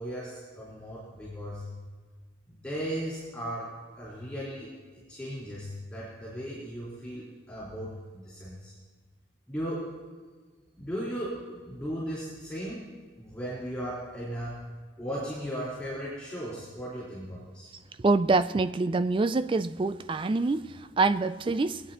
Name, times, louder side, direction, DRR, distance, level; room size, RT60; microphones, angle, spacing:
voice 1, 0.0-1.7 2.5-8.7 9.5-9.8 10.8-12.8 13.2-14.6 15.0-17.7, equal, 5° left, -8 dB, 4.0 m, -37 dB
voice 2, 18.0-21.8, right 3 dB, 25° right, 13 dB, 0.3 m, -26 dB
23.0 x 8.9 x 2.9 m, 1.5 s
head